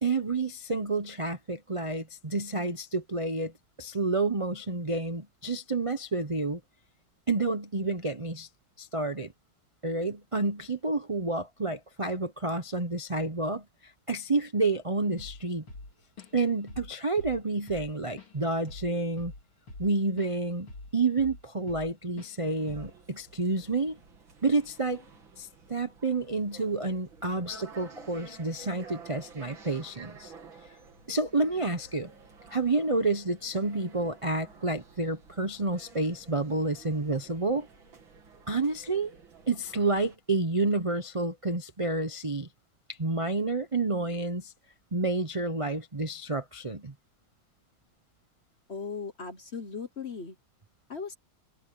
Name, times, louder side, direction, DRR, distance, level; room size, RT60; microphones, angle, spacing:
voice 1, 0.0-3.5 3.8-6.6 7.3-8.5 8.8-9.3 9.8-13.6 14.1-15.6 16.3-19.3 19.8-24.0 24.4-25.0 25.4-30.3 31.1-32.1 32.5-37.7 38.5-39.1 39.5-42.5 43.0-44.5 44.9-46.9, right 3 dB, 40° right, 0.4 m, -29 dB
Drum kit / Drum, 15.2-15.4 15.7-16.4 16.7-16.9 17.2-20.3 20.7-21.9 22.2-22.4 22.7-23.0, left 2 dB, 80° left, 4.6 m, -45 dB
sound 1, 22.4-40.2, right 4 dB, 65° right, 3.4 m, -52 dB
voice 2, 48.7-50.3 50.9-51.1, left 5 dB, 40° left, 1.1 m, -37 dB
omnidirectional pair, 2.3 m